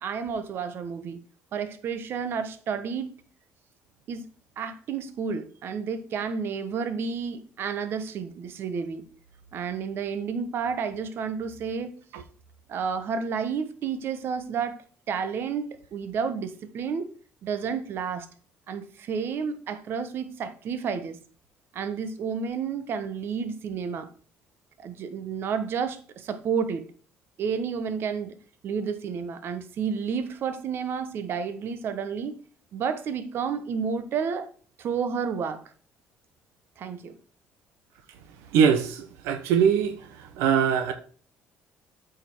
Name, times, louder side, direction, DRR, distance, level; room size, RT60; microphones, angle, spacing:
voice 1, 0.0-1.2 1.5-3.1 4.1-4.3 4.6-9.0 9.5-11.9 12.7-14.8 15.1-17.1 17.4-18.3 18.7-21.2 21.7-24.1 24.8-26.8 27.4-28.3 28.6-32.4 32.7-34.5 34.8-35.6 36.8-37.2, right 6 dB, 55° right, 1.2 m, -31 dB
voice 2, 38.5-39.9 40.4-40.9, right 7 dB, 90° right, 1.0 m, -22 dB
8.4 x 5.3 x 4.6 m
cardioid pair, 110°, 5 cm